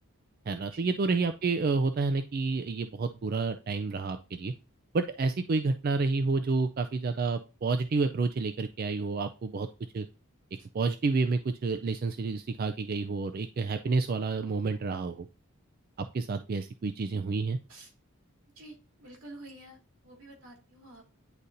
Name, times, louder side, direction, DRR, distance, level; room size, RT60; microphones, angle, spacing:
voice 1, 0.5-4.5 4.9-9.7 9.9-10.1 10.7-15.3 16.0-17.6, right 4 dB, 45° right, 8 dB, 0.3 m, -29 dB
voice 2, 18.6-21.3, right 2 dB, 85° right, 1 dB, 2.1 m, -50 dB
9.8 x 4.0 x 2.6 m, 0.31 s
head